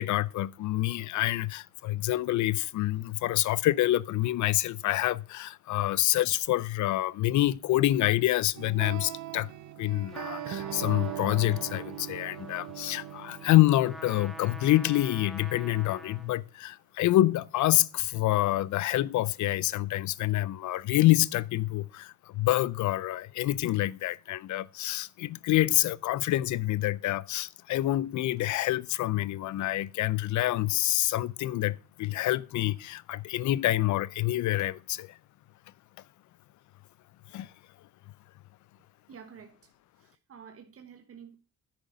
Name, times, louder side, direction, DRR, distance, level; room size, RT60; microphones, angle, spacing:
voice 1, 0.0-9.5 9.8-35.2 37.3-37.5, left 15 dB, 70° left, 0.6 m, -27 dB
sound 1, 8.6-15.6, right 13 dB, 75° right, 0.7 m, -40 dB
Trumpet, 10.1-16.4, equal, ahead, 1.4 m, -47 dB
voice 2, 39.1-39.7 40.0-41.3, right 7 dB, 50° right, 1.3 m, -50 dB
10.0 x 6.5 x 5.3 m
cardioid pair, 90°, 30 cm